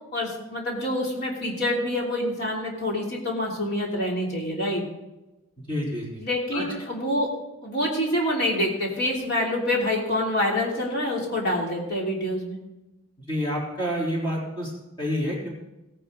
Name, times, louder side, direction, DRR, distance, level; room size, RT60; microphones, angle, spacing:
voice 1, 0.1-4.8 6.2-7.3 7.6-12.6, left 1 dB, 50° left, -2 dB, 3.1 m, -26 dB
voice 2, 5.7-6.1 6.5-6.6 13.3-14.7 15.0-15.5, equal, 20° left, -4 dB, 3.7 m, -28 dB
17.0 x 9.7 x 4.0 m, 1.0 s
head